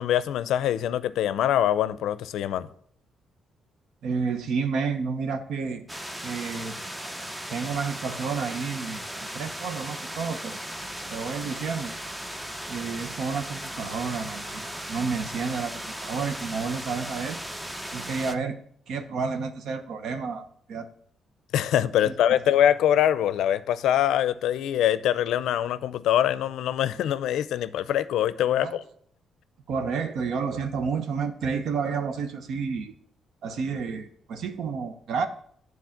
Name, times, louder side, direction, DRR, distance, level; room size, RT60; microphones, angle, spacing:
voice 1, 0.0-2.7 21.5-28.8, left 11 dB, 80° left, 0.4 m, -24 dB
voice 2, 4.0-5.9 6.2-6.7 7.5-10.6 11.1-11.9 12.7-17.4 17.9-18.6 18.9-20.9 22.0-22.1 28.6-28.8 29.7-32.9 33.4-35.3, right 5 dB, 70° right, 0.9 m, -30 dB
sound 1, 5.9-18.4, right 1 dB, 10° right, 0.7 m, -37 dB
9.4 x 4.0 x 7.2 m
cardioid pair, 90°, 0 cm